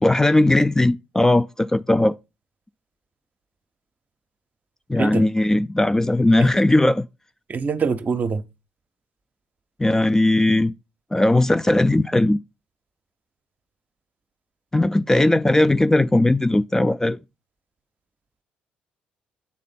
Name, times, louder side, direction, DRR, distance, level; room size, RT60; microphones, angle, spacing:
voice 1, 0.0-2.2 4.9-7.1 9.8-10.7 11.1-12.4 14.7-17.2, left 1 dB, 10° left, 0.3 m, -18 dB
voice 2, 7.5-8.4, right 5 dB, 40° right, 0.6 m, -24 dB
8.4 x 3.3 x 4.1 m
hypercardioid pair, 50°, 4 cm